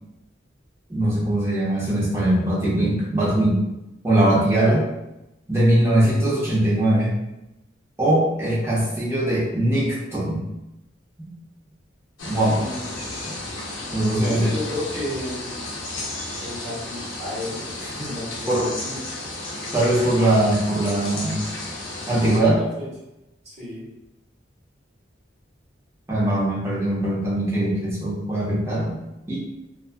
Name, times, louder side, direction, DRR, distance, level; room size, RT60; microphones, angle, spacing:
voice 1, 0.9-3.6 4.0-4.9 5.5-7.2 8.0-10.5 11.2-11.3 12.3-12.6 13.9-14.5 18.5-18.7 19.7-21.4 22.1-22.6 26.1-29.0 29.3-29.4, right 1 dB, 15° right, -7 dB, 0.7 m, -21 dB
sound 1, 12.2-22.4, left 2 dB, 90° left, 0.6 m, -33 dB
voice 2, 12.5-13.1 14.2-15.5 16.4-19.2 22.4-22.9 23.4-23.9, left 1 dB, 35° right, -8 dB, 1.1 m, -33 dB
2.4 x 2.4 x 2.4 m, 0.93 s
head